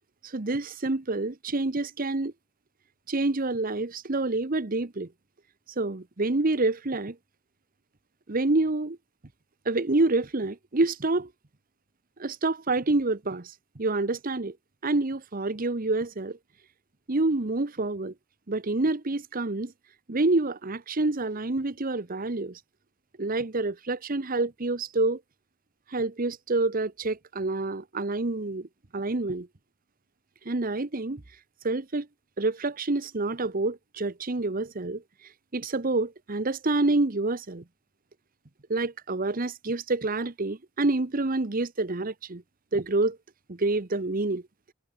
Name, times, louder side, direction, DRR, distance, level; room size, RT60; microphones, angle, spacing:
voice 1, 0.2-2.3 3.1-5.1 5.8-7.2 8.3-9.0 9.6-11.3 12.2-14.6 14.8-16.4 17.1-18.1 18.5-19.7 20.1-22.6 23.2-25.2 25.9-28.7 28.9-29.5 30.4-31.2 31.6-32.1 32.4-35.0 35.5-37.6 38.7-42.4 42.7-43.2 43.5-44.4, right 2 dB, 45° right, 1.1 m, -27 dB
head